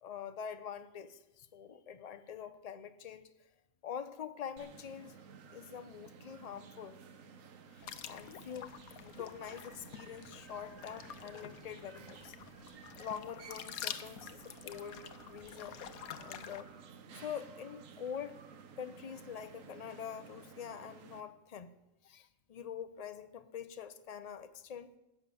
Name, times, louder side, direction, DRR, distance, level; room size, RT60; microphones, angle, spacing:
voice 1, 0.0-3.3 3.8-5.2 5.5-7.0 7.7-12.3 13.0-16.7 17.1-18.4 18.8-21.7 22.0-24.9, left 8 dB, 40° left, 11 dB, 0.6 m, -45 dB
sound 1, 4.6-21.2, right 6 dB, 70° right, 1.3 m, -54 dB
sound 2, 7.8-16.6, left 9 dB, 80° left, 1.2 m, -48 dB
14.5 x 6.1 x 8.4 m, 0.97 s
omnidirectional pair, 1.5 m